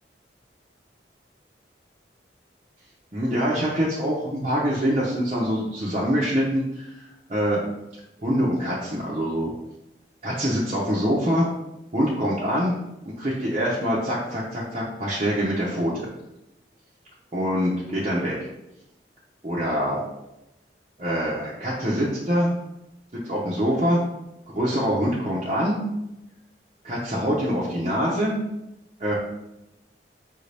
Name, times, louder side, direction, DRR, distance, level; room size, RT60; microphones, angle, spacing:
voice 1, 3.1-7.7 8.2-9.5 10.2-11.5 11.9-12.7 13.2-16.1 17.3-18.3 19.4-20.0 21.0-22.5 23.2-24.0 24.5-25.8 26.8-28.4 29.0-29.2, equal, 35° right, -7 dB, 0.7 m, -24 dB
5.4 x 2.7 x 3.3 m, 0.91 s
head